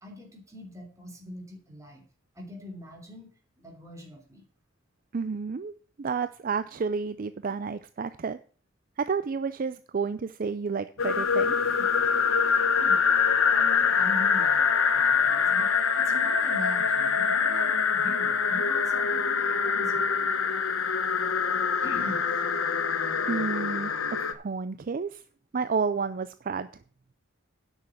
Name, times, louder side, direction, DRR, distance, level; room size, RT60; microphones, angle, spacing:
voice 1, 0.0-2.0 2.3-3.3 3.6-4.4 12.8-14.7 14.9-20.0 21.8-22.3, left 1 dB, 15° right, 1 dB, 3.0 m, -42 dB
voice 2, 5.1-5.7 6.0-8.4 9.0-11.7 23.3-25.2 25.5-26.7, right 5 dB, 45° right, 12 dB, 0.4 m, -31 dB
sound 1, 11.0-24.3, left 6 dB, 80° left, 1.0 m, -24 dB
9.7 x 6.4 x 7.0 m, 0.42 s
head